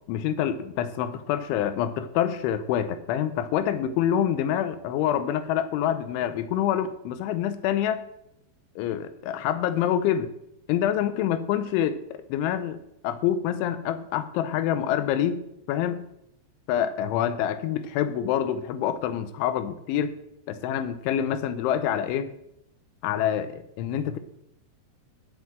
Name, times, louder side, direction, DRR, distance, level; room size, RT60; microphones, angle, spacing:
voice 1, 0.1-8.0 8.8-10.3 10.7-15.4 15.7-16.0 16.7-20.1 20.5-22.3 23.0-24.2, left 10 dB, 90° left, 11 dB, 3.2 m, -26 dB
10.5 x 7.5 x 7.5 m, 0.79 s
omnidirectional pair, 5.3 m